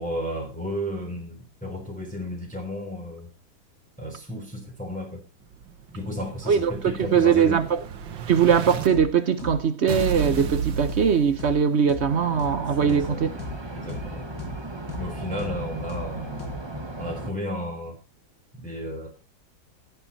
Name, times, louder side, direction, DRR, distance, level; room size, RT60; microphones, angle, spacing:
voice 1, 0.0-3.3 4.0-5.2 5.9-7.6 12.8-13.2 13.7-14.3 15.0-16.5 17.0-18.0 18.6-19.1, equal, 5° left, 3.5 m, -33 dB
Explosion, 5.5-8.9 9.9-11.9, right 8 dB, 85° right, 1.9 m, -33 dB
voice 2, 6.5-7.8 8.3-13.3, right 7 dB, 55° right, 0.8 m, -21 dB
sound 1, 8.9-9.1 9.4-9.6 9.9-10.1 10.4-10.6 10.9-11.1 11.4-11.6 11.9-12.1 12.4-12.6 12.9-13.1 13.4-13.6 13.9-14.1 14.4-14.6 14.9-15.1 15.4-15.6 15.9-16.1 16.4-16.6, left 2 dB, 55° left, 2.7 m, -36 dB
sound 2, 12.1-17.3, right 1 dB, 15° right, 1.2 m, -36 dB
19.0 x 7.1 x 4.2 m
omnidirectional pair, 2.0 m